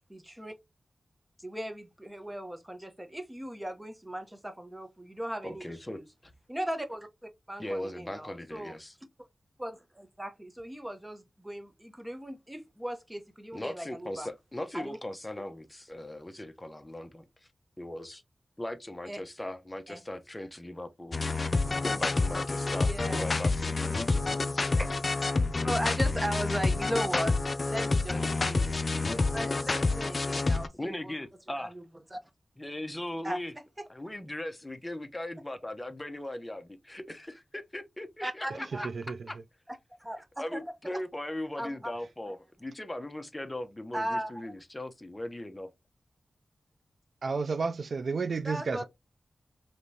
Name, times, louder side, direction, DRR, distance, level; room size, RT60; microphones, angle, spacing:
voice 1, 0.1-0.5 1.4-6.0 6.5-8.7 9.6-14.3 14.7-15.0 19.1-19.2 19.9-20.0 22.9-23.2 24.7-24.9 25.6-27.3 27.7-31.1 31.6-31.8 32.1-32.2 33.2-33.4 33.8-33.9 38.2-38.9 40.0-40.6 41.6-41.9 43.9-44.4 48.4-48.8, right 1 dB, 15° right, 1.0 m, -37 dB
voice 2, 5.4-6.3 7.6-9.0 13.5-17.5 17.8-18.2 18.6-21.2 21.8-22.9 23.2-24.3 28.4-28.5 30.7-31.7 32.6-33.5 33.9-38.9 39.3-39.4 40.4-45.7, left 1 dB, 20° left, 0.8 m, -39 dB
sound 1, 21.1-30.7, left 3 dB, 50° left, 0.4 m, -28 dB
voice 3, 38.8-39.2 47.2-48.8, right 4 dB, 75° right, 0.4 m, -31 dB
5.2 x 3.1 x 2.8 m
wide cardioid pair, 70°, 0 cm